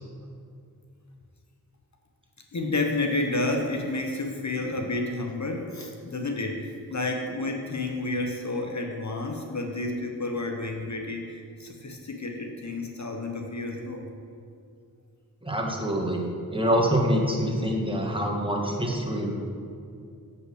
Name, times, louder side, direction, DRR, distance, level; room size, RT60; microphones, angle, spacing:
voice 1, 2.5-14.1, left 2 dB, 45° left, 2 dB, 1.0 m, -30 dB
voice 2, 15.4-16.2 16.5-19.3, equal, 15° right, -1 dB, 1.6 m, -25 dB
7.8 x 5.6 x 6.3 m, 2.4 s
cardioid pair, 50°, 38 cm